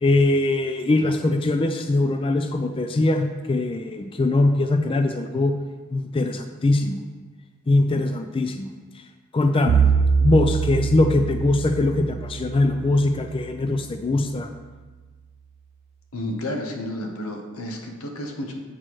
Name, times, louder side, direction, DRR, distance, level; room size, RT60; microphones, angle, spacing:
voice 1, 0.0-5.5 5.9-7.0 7.7-8.7 8.9-9.0 9.3-9.9 10.2-14.5, left 2 dB, 25° left, 6 dB, 0.3 m, -21 dB
Bowed string instrument, 9.7-13.9, right 6 dB, 70° right, 0.3 m, -24 dB
voice 2, 16.1-18.5, left 1 dB, 90° left, 3 dB, 1.1 m, -31 dB
7.5 x 6.2 x 3.1 m, 1.3 s
head